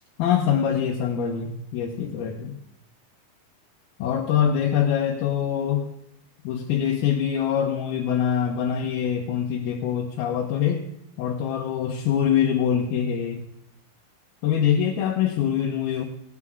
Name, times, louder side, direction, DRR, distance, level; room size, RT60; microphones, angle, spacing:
voice 1, 0.2-2.6 4.0-5.8 6.4-10.8 11.2-13.5 14.4-16.1, left 8 dB, 75° left, 0 dB, 2.7 m, -24 dB
17.5 x 9.6 x 3.6 m, 0.76 s
omnidirectional pair, 4.5 m